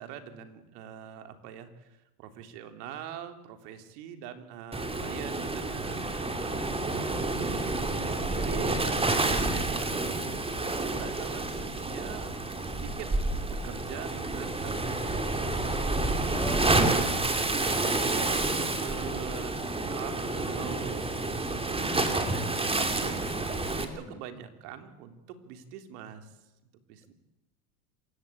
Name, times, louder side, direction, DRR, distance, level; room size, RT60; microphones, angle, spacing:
voice 1, 0.0-6.1 6.4-6.8 7.3-9.9 10.7-12.3 12.7-13.1 13.5-15.5 16.8-18.3 18.8-19.6 19.9-20.2 20.5-23.2 23.8-26.3 26.9-27.1, right 9 dB, 75° right, 8 dB, 3.6 m, -43 dB
Waves surf, 4.7-23.8, right 2 dB, 10° right, 2.8 m, -29 dB
voice 2, 6.2-7.2 16.3-17.2 23.7-24.2, left 2 dB, 5° left, 10 dB, 1.9 m, -43 dB
27.0 x 16.5 x 8.8 m, 0.99 s
supercardioid pair, 120°, 47 cm